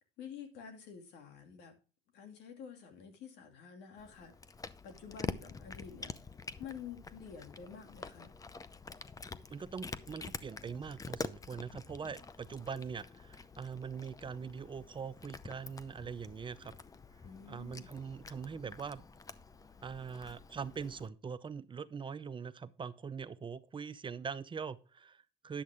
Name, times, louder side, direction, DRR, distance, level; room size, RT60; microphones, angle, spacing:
voice 1, 0.2-1.7 2.1-4.3 4.8-6.1 6.6-8.3 17.2-17.9, left 7 dB, 80° left, 2.4 m, -49 dB
Cat, 4.0-21.1, left 4 dB, 20° left, 0.6 m, -47 dB
voice 2, 9.5-16.7 17.5-19.1 19.8-25.6, right 6 dB, 30° right, 0.6 m, -42 dB
10.0 x 7.6 x 3.5 m
cardioid pair, 110°, 17 cm